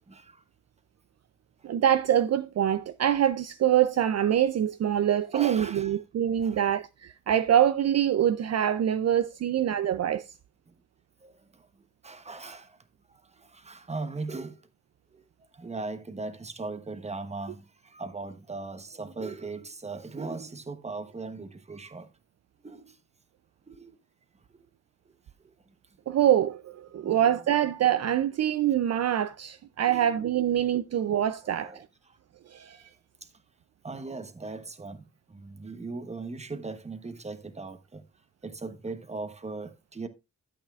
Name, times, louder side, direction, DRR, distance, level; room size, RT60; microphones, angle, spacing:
voice 1, 0.1-0.4 5.3-6.0 6.4-6.6 10.7-10.8 11.2-12.8 13.1-14.6 15.1-15.2 15.5-22.1 22.6-23.0 23.7-24.0 24.5-24.7 25.4-25.7 26.9-27.3 29.9-30.1 31.4-32.2 32.7-32.8 33.2-33.3 33.8-38.0 38.4-40.1, right 3 dB, 20° right, 1.0 m, -39 dB
voice 2, 1.6-10.3 26.1-31.9 32.5-32.8, right 10 dB, 55° right, 0.4 m, -25 dB
12.5 x 8.1 x 2.4 m
wide cardioid pair, 100°, 31 cm